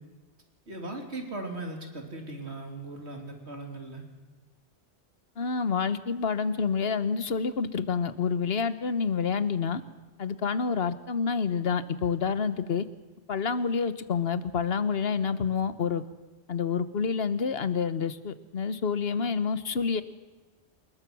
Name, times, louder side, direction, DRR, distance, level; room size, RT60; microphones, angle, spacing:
voice 1, 0.7-4.1, right 2 dB, 75° right, 2 dB, 3.6 m, -38 dB
voice 2, 5.4-9.8 10.2-12.8 13.3-16.0 16.5-20.0, left 5 dB, 65° left, 12 dB, 1.3 m, -28 dB
27.5 x 21.0 x 6.2 m, 1.2 s
omnidirectional pair, 1.1 m